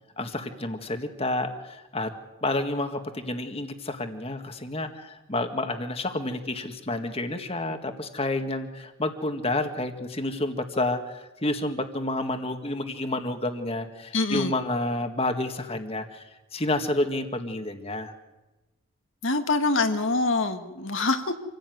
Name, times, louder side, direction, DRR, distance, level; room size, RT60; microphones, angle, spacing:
voice 1, 0.2-2.1 2.4-16.2 16.5-18.1, left 2 dB, 25° left, 7 dB, 1.8 m, -29 dB
voice 2, 14.1-14.5 19.2-21.4, left 3 dB, 60° left, 7 dB, 1.7 m, -25 dB
27.0 x 16.0 x 9.4 m, 1.1 s
head